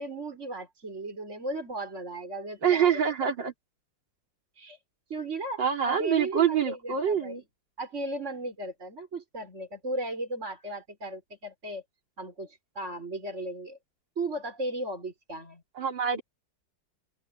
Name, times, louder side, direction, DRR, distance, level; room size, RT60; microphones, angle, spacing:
voice 1, 0.0-3.3 4.6-4.8 5.1-7.4 7.8-11.8 12.2-13.8 14.2-15.6, right 2 dB, 40° right, 5.0 m, -36 dB
voice 2, 2.6-3.5 5.6-7.4 15.8-16.2, right 8 dB, 80° right, 3.7 m, -25 dB
open air
omnidirectional pair, 2.0 m